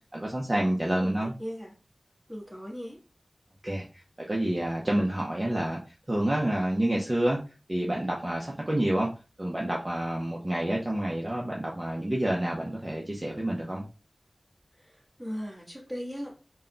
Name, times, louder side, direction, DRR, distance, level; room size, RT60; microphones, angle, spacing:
voice 1, 0.1-1.3 3.6-3.8 4.3-5.8 6.1-7.4 7.7-9.1 9.4-13.8, right 1 dB, 35° right, -2 dB, 0.8 m, -28 dB
voice 2, 0.8-1.8 2.3-3.0 14.8-16.3, equal, 10° right, -3 dB, 1.4 m, -38 dB
3.6 x 2.3 x 3.8 m, 0.33 s
wide cardioid pair, 60°, 0 cm